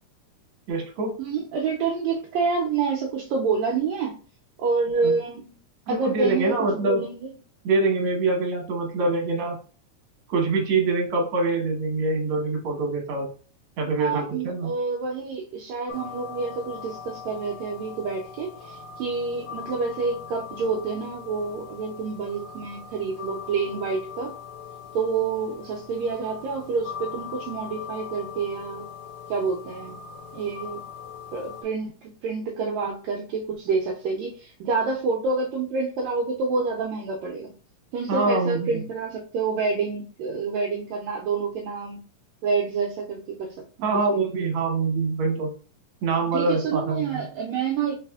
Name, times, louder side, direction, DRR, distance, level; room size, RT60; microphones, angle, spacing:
voice 1, 0.7-1.1 5.0-5.1 5.9-7.0 7.6-9.6 10.3-13.3 13.8-14.7 38.1-38.8 43.8-45.5 46.0-47.2, right 3 dB, 60° right, 0 dB, 1.6 m, -24 dB
voice 2, 1.2-4.2 4.6-5.6 5.9-7.3 14.0-24.3 24.9-28.9 29.3-30.0 30.3-30.8 31.3-37.5 37.9-42.0 42.4-44.2 46.3-48.0, right 4 dB, 80° right, 0 dB, 1.6 m, -28 dB
sound 1, 15.9-31.6, left 7 dB, 75° left, 1.8 m, -41 dB
4.1 x 4.0 x 2.3 m, 0.38 s
omnidirectional pair, 3.8 m